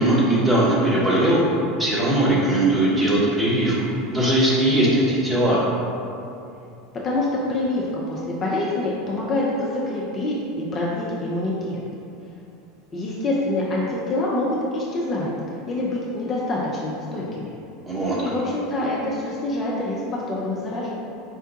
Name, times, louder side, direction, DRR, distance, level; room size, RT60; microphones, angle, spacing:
voice 1, 0.0-1.4 1.8-3.7 4.1-5.6 17.9-18.2, right 1 dB, 15° right, -7 dB, 1.0 m, -19 dB
voice 2, 7.0-11.8 12.9-15.3 15.7-17.5 18.2-20.9, left 2 dB, 30° left, -5 dB, 0.5 m, -26 dB
4.5 x 2.2 x 2.7 m, 2.7 s
figure-of-eight pair, 75°, 0 cm